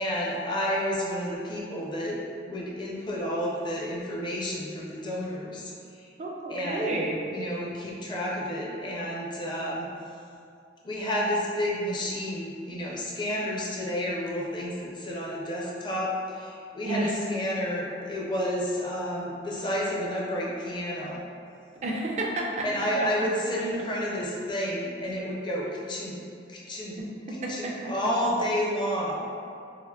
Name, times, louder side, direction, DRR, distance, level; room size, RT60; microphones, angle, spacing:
voice 1, 0.0-2.2 2.4-6.1 6.5-6.9 7.3-9.9 10.8-21.2 22.6-26.2 26.5-27.0 27.5-29.2, equal, 25° left, -4 dB, 0.4 m, -30 dB
voice 2, 6.2-7.2 16.9-17.1 21.8-23.1 27.0-27.1 27.4-27.9, right 2 dB, 40° right, -1 dB, 0.4 m, -31 dB
3.6 x 2.5 x 2.3 m, 2.5 s
head